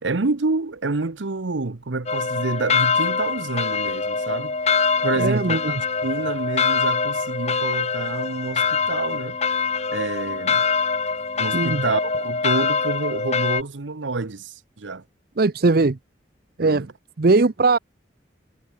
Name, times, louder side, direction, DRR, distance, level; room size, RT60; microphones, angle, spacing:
voice 1, 0.0-4.6 5.0-9.4 9.9-10.6 11.4-15.0 16.6-16.8, right 3 dB, 85° right, 1.0 m, -28 dB
sound 1, 2.1-13.6, left 5 dB, 35° left, 1.5 m, -24 dB
voice 2, 5.2-5.8 11.5-11.8 15.4-16.0 16.6-16.9 17.2-17.8, right 3 dB, 55° right, 0.7 m, -19 dB
head